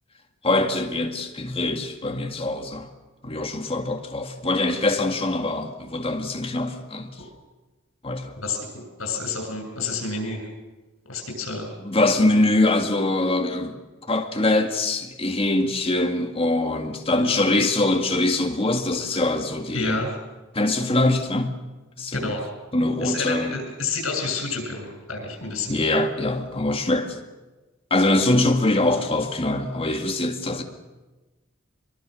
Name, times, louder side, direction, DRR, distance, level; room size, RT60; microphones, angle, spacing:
voice 1, 0.4-2.9 3.2-7.2 8.0-8.3 11.8-13.8 14.1-20.1 20.5-21.6 22.0-22.3 22.7-23.6 25.7-27.2 27.9-30.6, left 2 dB, 30° left, 2.1 m, -23 dB
voice 2, 8.4-10.4 11.1-11.7 17.1-17.3 17.5-17.7 19.7-20.1 22.1-22.4 23.0-25.7, left 3 dB, 85° left, 7.4 m, -29 dB
24.0 x 23.0 x 6.5 m
head